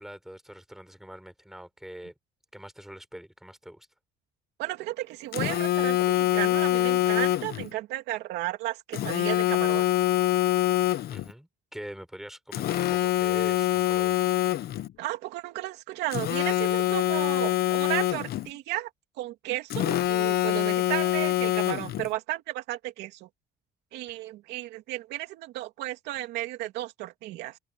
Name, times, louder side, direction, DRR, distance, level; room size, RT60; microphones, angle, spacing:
voice 1, 0.0-2.1 2.5-3.9 11.1-14.2, equal, ahead, 4.1 m, -43 dB
voice 2, 4.6-9.9 15.0-18.9 19.2-23.3 23.9-27.6, right 16 dB, 90° right, 2.8 m, -34 dB
Telephone, 5.3-7.7 8.9-11.3 12.5-14.9 16.1-18.5 19.7-22.1, left 14 dB, 65° left, 1.1 m, -25 dB
open air
cardioid pair, 110°, 17 cm